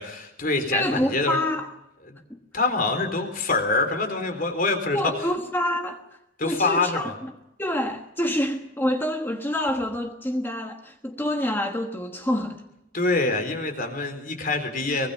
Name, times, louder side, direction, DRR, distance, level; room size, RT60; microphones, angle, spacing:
voice 1, 0.0-1.4 2.5-5.0 6.4-7.1 12.9-15.1, left 3 dB, 45° left, 7 dB, 4.1 m, -25 dB
voice 2, 0.7-1.7 2.3-2.4 4.9-6.0 6.4-7.1 7.6-12.6 14.9-15.0, left 1 dB, 10° left, 4 dB, 1.3 m, -27 dB
24.5 x 21.0 x 5.7 m, 0.87 s
head